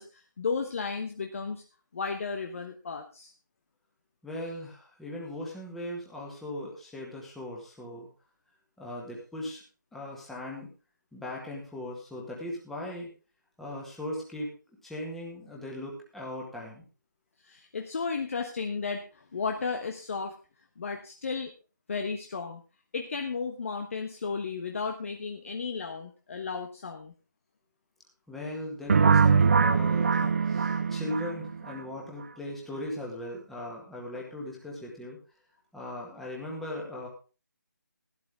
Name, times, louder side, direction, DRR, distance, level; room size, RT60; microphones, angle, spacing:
voice 1, 0.0-1.6 1.9-3.3 17.4-19.0 19.3-20.3 20.8-21.5 21.9-22.6 22.9-27.1, left 5 dB, 45° left, 4 dB, 1.3 m, -34 dB
voice 2, 4.2-8.1 8.8-9.6 9.9-10.7 11.1-13.1 13.6-14.5 14.8-16.8 28.3-35.2 35.7-37.1, left 1 dB, ahead, -3 dB, 1.9 m, -38 dB
sound 1, 28.9-31.8, right 5 dB, 40° right, 0.6 m, -22 dB
14.0 x 12.0 x 3.5 m, 0.33 s
figure-of-eight pair, 160°, 11 cm